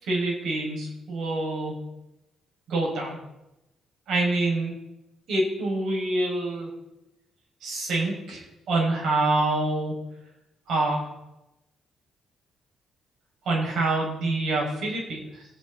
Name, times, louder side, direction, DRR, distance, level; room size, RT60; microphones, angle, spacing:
voice 1, 0.0-1.8 2.7-3.2 4.1-4.7 5.3-6.7 7.6-10.0 10.7-11.1 13.4-15.5, right 2 dB, 70° right, -2 dB, 6.5 m, -26 dB
21.0 x 8.6 x 4.3 m, 0.92 s
cardioid pair, 90°, 0 cm